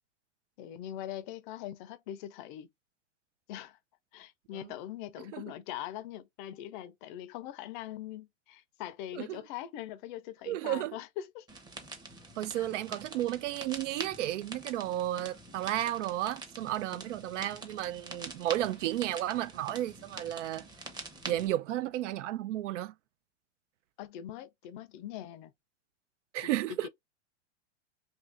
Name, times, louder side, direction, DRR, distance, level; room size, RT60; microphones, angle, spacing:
voice 1, 0.6-2.7 3.5-3.8 4.1-11.5 12.5-12.7 24.0-25.5 26.4-26.9, left 12 dB, 45° left, 0.5 m, -42 dB
voice 2, 10.5-11.0 12.4-20.7 21.3-22.9 26.3-26.9, right 13 dB, 85° right, 0.5 m, -33 dB
sound 1, 11.5-21.5, right 2 dB, 10° right, 0.7 m, -45 dB
2.8 x 2.6 x 3.2 m
hypercardioid pair, 130°, 36 cm